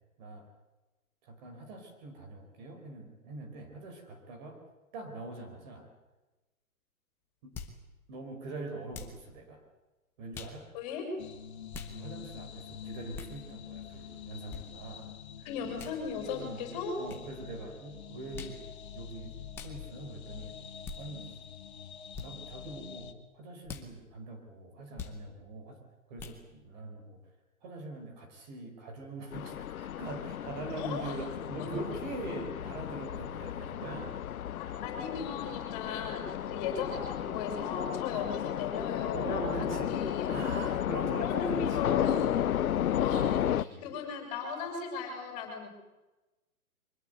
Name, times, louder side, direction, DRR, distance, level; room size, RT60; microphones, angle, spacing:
voice 1, 1.2-4.6 4.9-5.9 7.4-7.5 8.1-9.6 10.2-10.6 11.9-15.1 16.4-16.7 17.0-18.6 18.9-20.5 21.0-21.3 22.2-25.8 26.1-27.2 27.6-34.2 36.5-36.6 39.1-40.0 40.3-42.1 42.9-43.9, right 2 dB, 30° right, 5 dB, 4.7 m, -42 dB
sound 1, 7.5-7.8 8.9-9.2 10.3-10.6 11.7-11.9 13.1-13.4 14.5-14.6 15.8-16.0 17.1-17.2 18.3-18.6 19.5-19.8 20.8-21.0 22.1-22.3 23.6-23.9 25.0-25.2 26.2-26.4, left 5 dB, 5° left, 0.8 m, -43 dB
voice 2, 10.7-11.1 15.4-17.0 30.8-31.1 31.6-31.7 34.6-40.3 41.2-42.5 43.0-45.7, left 5 dB, 25° left, 4 dB, 5.9 m, -37 dB
sound 2, 11.2-23.1, left 8 dB, 45° left, 2.5 m, -46 dB
sound 3, 29.3-43.6, left 11 dB, 70° left, 0.8 m, -33 dB
24.0 x 21.0 x 8.0 m, 1.1 s
hypercardioid pair, 165°, 44 cm